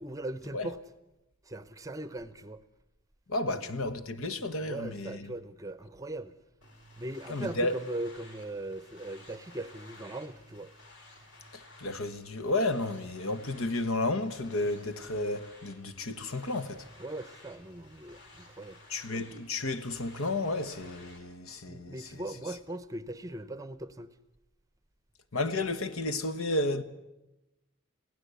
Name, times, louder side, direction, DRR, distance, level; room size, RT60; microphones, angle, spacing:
voice 1, 0.0-0.8 1.5-2.6 4.6-6.3 7.0-10.7 17.0-18.8 21.7-24.1, right 1 dB, 15° right, 0.7 m, -39 dB
voice 2, 3.3-5.3 7.3-7.8 11.5-16.9 18.9-22.2 25.3-26.8, left 2 dB, 80° left, 1.2 m, -32 dB
sound 1, 6.6-21.2, left 2 dB, 55° left, 4.3 m, -54 dB
23.0 x 16.0 x 8.2 m
head